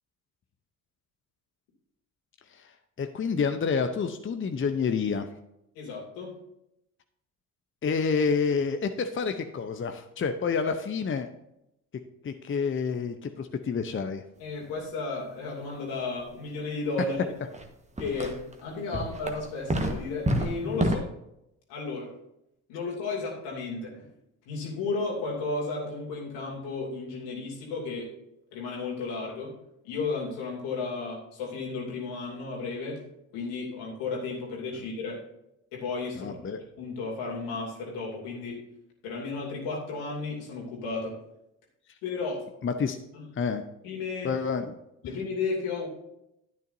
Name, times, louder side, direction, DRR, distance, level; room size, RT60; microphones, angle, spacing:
voice 1, 3.0-5.3 7.8-11.3 12.2-14.2 18.9-19.0 36.2-36.6 42.6-43.0 43.3-43.6 44.2-44.7, left 5 dB, 30° left, 8 dB, 0.8 m, -28 dB
voice 2, 5.7-6.4 14.4-17.3 18.0-21.1 21.7-22.1 22.7-24.1 24.5-28.1 28.5-29.5 29.8-33.0 33.3-35.2 35.7-38.6 39.0-41.2 42.0-42.5 43.1-43.2 43.8-44.3 45.0-45.9, left 3 dB, 75° left, -2 dB, 2.8 m, -33 dB
sound 1, 17.5-17.7 18.0-18.5 18.9-20.9, right 1 dB, 15° right, 1.4 m, -28 dB
10.5 x 9.3 x 2.7 m, 0.82 s
hypercardioid pair, 50°, 41 cm